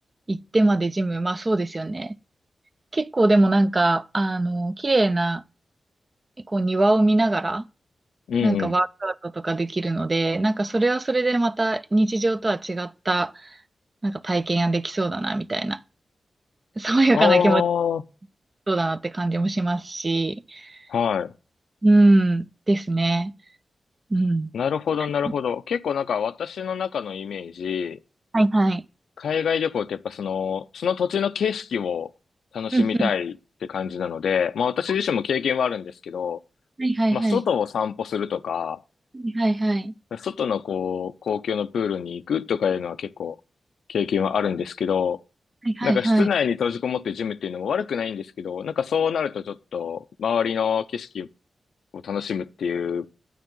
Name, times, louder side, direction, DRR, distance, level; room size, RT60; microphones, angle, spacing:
voice 1, 0.3-2.2 2.9-5.4 6.5-7.6 8.4-13.6 14.0-15.8 16.8-17.6 18.7-20.8 21.8-23.3 24.1-24.5 28.3-28.8 32.7-32.9 36.8-37.4 39.1-39.9 45.6-46.3, right 2 dB, 35° right, 0.6 m, -22 dB
voice 2, 8.3-8.7 17.1-18.0 20.9-21.3 24.5-28.0 29.2-32.1 32.5-33.3 33.6-36.4 37.1-38.8 40.1-43.4 43.9-45.2 45.8-51.3 52.0-53.1, left 7 dB, 85° left, 0.5 m, -26 dB
9.3 x 8.7 x 3.7 m
cardioid pair, 50°, 0 cm